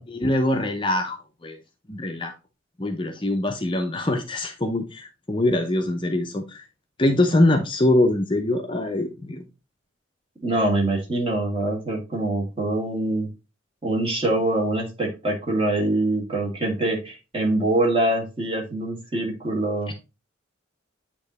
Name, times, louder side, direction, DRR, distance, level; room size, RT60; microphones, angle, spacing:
voice 1, 0.1-1.6 1.9-2.3 2.8-6.6 7.0-9.5, left 1 dB, 25° left, 5 dB, 0.6 m, -23 dB
voice 2, 10.4-13.3 13.8-19.9, right 1 dB, 25° right, 0 dB, 1.8 m, -24 dB
8.6 x 3.0 x 4.0 m, 0.28 s
head